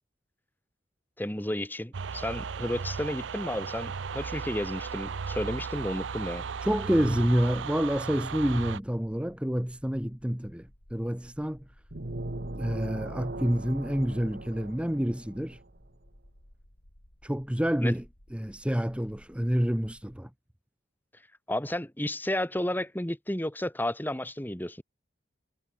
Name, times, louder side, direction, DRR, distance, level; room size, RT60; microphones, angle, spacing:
voice 1, 1.2-6.4 17.8-17.9 21.5-24.8, left 1 dB, 10° left, 1.9 m, -32 dB
sound 1, 1.9-8.8, right 5 dB, 85° right, 0.6 m, -36 dB
voice 2, 6.6-11.7 12.6-15.6 17.2-18.0 18.3-20.3, equal, 5° right, 0.9 m, -28 dB
sound 2, 11.9-15.6, right 1 dB, 60° right, 1.6 m, -38 dB
sound 3, 16.8-20.2, equal, 65° left, 6.3 m, -58 dB
head